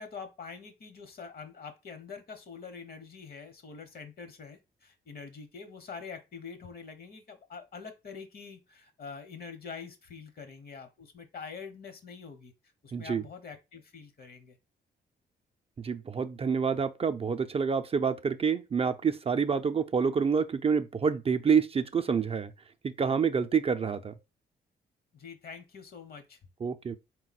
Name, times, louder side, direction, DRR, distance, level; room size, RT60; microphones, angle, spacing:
voice 1, 0.0-12.5 12.8-14.6 25.1-26.4, left 5 dB, 55° left, 1.0 m, -45 dB
voice 2, 12.9-13.2 15.8-22.5 22.8-24.1 26.6-27.0, right 6 dB, 30° right, 0.4 m, -27 dB
4.1 x 2.2 x 4.0 m
cardioid pair, 80°, 18 cm